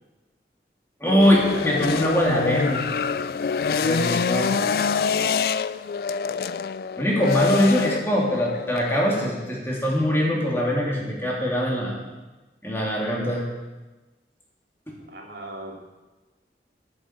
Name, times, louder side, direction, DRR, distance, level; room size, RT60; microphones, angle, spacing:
voice 1, 1.0-2.8 3.7-4.5 7.0-12.0 12.6-13.4 14.9-15.0, equal, 15° left, -3 dB, 2.9 m, -22 dB
sound 1, 1.2-9.3, left 5 dB, 55° left, 0.3 m, -26 dB
voice 2, 4.4-5.3 15.1-15.7, right 1 dB, 70° right, -1 dB, 2.9 m, -38 dB
10.5 x 7.7 x 8.9 m, 1.2 s
head